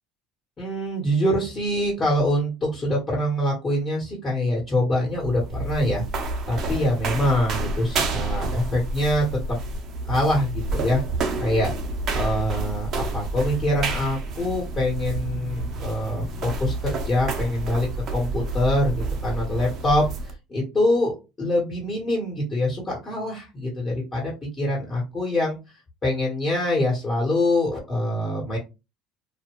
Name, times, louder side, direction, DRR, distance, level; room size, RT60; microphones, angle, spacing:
voice 1, 0.6-6.0 6.5-9.2 10.0-11.0 11.4-11.7 12.1-17.9 18.1-21.1 21.4-25.6 26.0-28.6, left 1 dB, 25° left, -3 dB, 1.3 m, -24 dB
sound 1, 5.1-20.3, right 3 dB, 45° right, 0.7 m, -29 dB
2.5 x 2.3 x 3.0 m, 0.26 s
supercardioid pair, 115°, 0 cm